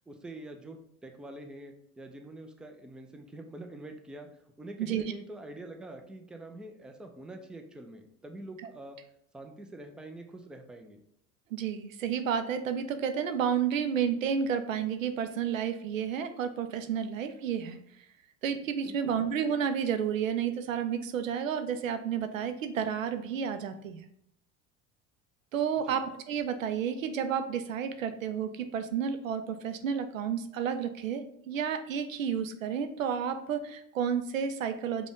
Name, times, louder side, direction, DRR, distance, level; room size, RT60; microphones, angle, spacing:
voice 1, 0.1-9.0 9.3-11.0 18.8-19.2 25.8-26.0, right 1 dB, ahead, 4 dB, 0.4 m, -45 dB
voice 2, 11.5-17.8 18.4-24.1 25.5-35.1, right 7 dB, 90° right, 9 dB, 0.5 m, -31 dB
5.0 x 2.3 x 3.7 m, 0.71 s
hypercardioid pair, 75°, 38 cm